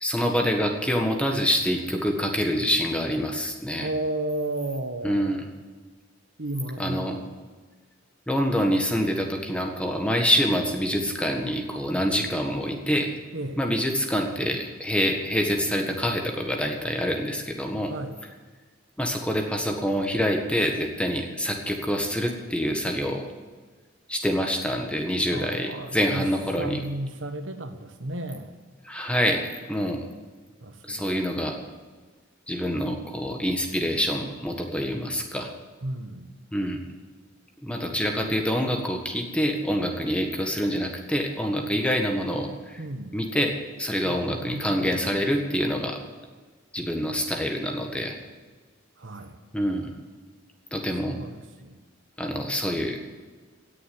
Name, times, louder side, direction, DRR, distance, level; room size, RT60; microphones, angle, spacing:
voice 1, 0.0-3.9 5.0-5.4 6.8-7.2 8.3-13.1 13.6-17.9 19.0-23.3 24.1-26.8 28.9-30.1 30.9-31.6 32.5-35.5 36.5-36.8 37.6-42.8 43.1-46.0 46.7-48.2 49.5-49.9 50.7-51.1 52.2-53.0, equal, 5° left, 2 dB, 1.6 m, -26 dB
voice 2, 3.8-5.4 6.4-7.3 13.3-13.6 17.9-18.2 25.3-26.3 26.5-28.5 30.6-31.2 35.8-36.3 42.8-43.1 44.0-45.1 49.0-49.4 51.0-51.8, right 1 dB, 65° right, 7 dB, 1.3 m, -33 dB
18.0 x 7.0 x 9.6 m, 1.4 s
head